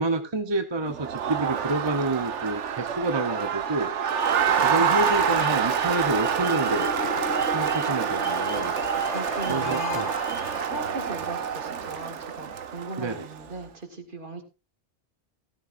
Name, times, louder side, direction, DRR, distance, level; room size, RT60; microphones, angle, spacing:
voice 1, 0.0-3.9 4.6-6.9 7.5-8.7 9.5-10.1 13.0-13.3, right 2 dB, 25° right, 8 dB, 0.8 m, -28 dB
Crowd, 0.9-13.4, right 7 dB, 85° right, 1.3 m, -27 dB
sound 1, 4.9-10.8, right 1 dB, ahead, 2.5 m, -45 dB
sound 2, 6.6-11.3, left 8 dB, 75° left, 1.1 m, -37 dB
voice 2, 9.1-10.1 10.6-14.4, right 2 dB, 45° right, 6 dB, 2.0 m, -38 dB
14.0 x 13.0 x 2.5 m, 0.27 s
omnidirectional pair, 1.2 m